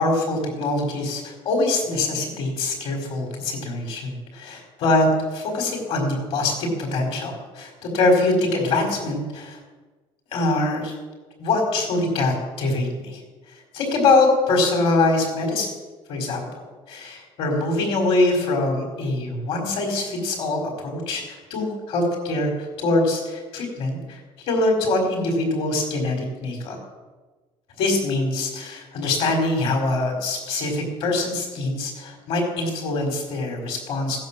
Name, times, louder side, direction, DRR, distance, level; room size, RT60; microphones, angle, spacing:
voice 1, 0.0-9.6 10.3-10.9 11.4-13.2 13.7-15.7 16.1-16.5 16.9-22.5 22.8-24.2 24.5-26.8 27.8-34.2, left 2 dB, 60° left, 2 dB, 5.0 m, -23 dB
17.0 x 10.5 x 7.6 m, 1.3 s
cardioid pair, 175°, 11 cm